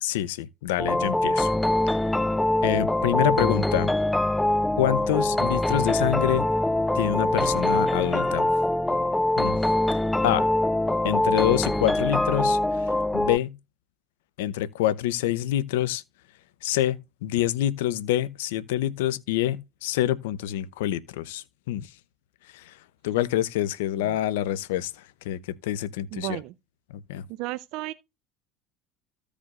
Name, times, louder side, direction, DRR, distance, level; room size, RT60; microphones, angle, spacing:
voice 1, 0.0-1.5 1.9-2.1 2.6-3.9 4.8-6.5 6.9-8.5 9.4-9.6 9.9-10.5 11.0-12.9 13.1-13.6 14.4-16.0 16.6-21.9 22.5-22.8 23.0-24.9 25.2-26.4 26.9-27.2, left 13 dB, 80° left, 0.7 m, -26 dB
sound 1, 0.8-13.4, left 1 dB, 5° left, 0.4 m, -24 dB
voice 2, 26.1-26.5 27.3-27.9, right 18 dB, 65° right, 0.5 m, -33 dB
15.0 x 5.1 x 2.4 m
hypercardioid pair, 85°, 0 cm